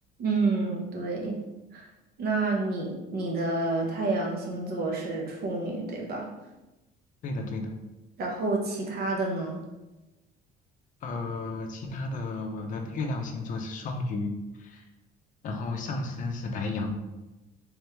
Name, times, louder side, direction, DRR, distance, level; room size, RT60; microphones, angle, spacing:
voice 1, 0.2-1.3 1.7-1.9 2.2-6.3 8.2-9.6, right 3 dB, 55° right, -1 dB, 0.8 m, -29 dB
voice 2, 7.2-7.8 11.0-14.8 15.4-17.0, left 3 dB, 45° left, 3 dB, 0.5 m, -33 dB
3.4 x 3.0 x 3.3 m, 1.0 s
cardioid pair, 170°, 19 cm